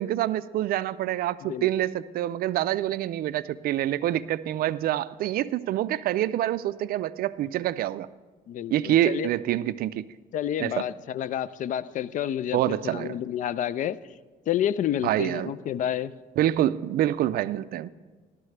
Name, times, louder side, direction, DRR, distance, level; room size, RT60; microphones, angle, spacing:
voice 1, 0.0-8.1 8.7-10.0 10.6-10.8 12.5-13.2 15.0-15.5 16.4-17.9, right 13 dB, 60° right, 15 dB, 0.4 m, -26 dB
voice 2, 8.5-9.3 10.3-14.0 14.5-16.1, left 10 dB, 50° left, 17 dB, 0.4 m, -29 dB
14.5 x 12.0 x 3.3 m, 1.4 s
cardioid pair, 110°, 17 cm